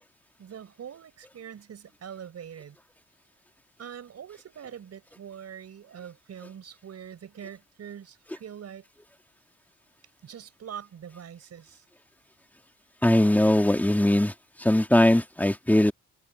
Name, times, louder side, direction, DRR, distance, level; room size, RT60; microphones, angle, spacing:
voice 1, 0.4-2.8 3.8-8.8 10.2-11.8, right 8 dB, 55° right, 5.9 m, -43 dB
voice 2, 13.0-14.3 14.6-15.9, left 1 dB, 5° left, 2.3 m, -20 dB
cardioid pair, 90°, 30 cm